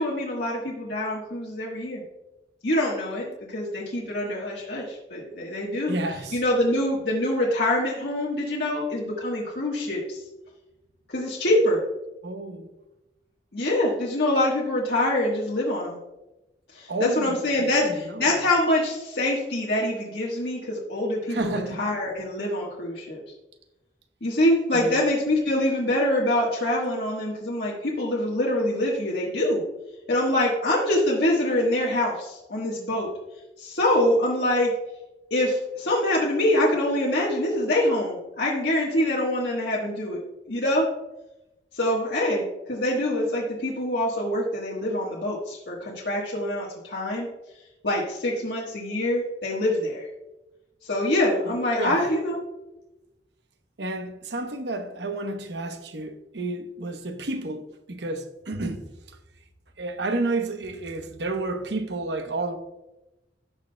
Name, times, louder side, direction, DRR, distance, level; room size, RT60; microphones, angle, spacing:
voice 1, 0.0-2.0 2.6-6.0 6.3-10.2 11.1-11.8 13.5-16.0 16.7-23.2 24.2-29.6 30.1-33.1 33.6-34.7 35.3-40.2 40.5-40.9 41.7-47.3 47.8-50.1 50.8-52.4, left 1 dB, 70° left, 1.4 m, -25 dB
voice 2, 5.9-6.4 12.2-12.7 16.9-18.4 21.3-21.9 24.7-25.0 51.8-52.1 53.8-58.9 59.8-62.6, right 2 dB, 75° right, 0.9 m, -31 dB
16.0 x 6.2 x 2.2 m
head